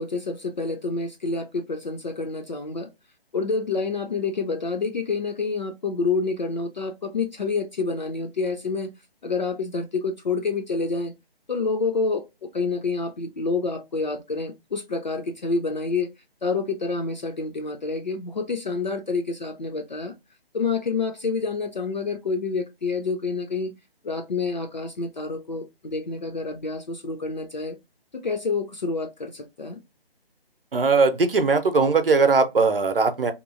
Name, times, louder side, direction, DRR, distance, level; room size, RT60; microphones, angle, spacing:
voice 1, 0.0-2.9 3.3-8.9 9.2-11.1 11.5-16.1 16.4-20.1 20.5-23.7 24.0-27.8 28.1-29.8, left 4 dB, 45° left, 0.5 m, -28 dB
voice 2, 30.7-33.3, right 4 dB, 65° right, 0.6 m, -20 dB
2.9 x 2.4 x 2.5 m
figure-of-eight pair, 145°, 30 cm